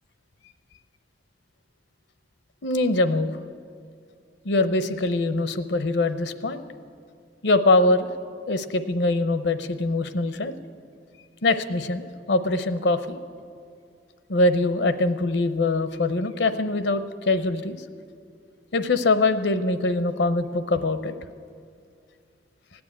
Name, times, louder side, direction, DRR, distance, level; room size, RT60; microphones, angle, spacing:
voice 1, 2.6-3.3 4.4-6.6 7.4-8.1 8.5-10.5 11.4-13.2 14.3-17.8 18.7-21.1, left 2 dB, 70° left, 11 dB, 0.7 m, -23 dB
16.0 x 9.6 x 8.7 m, 2.3 s
head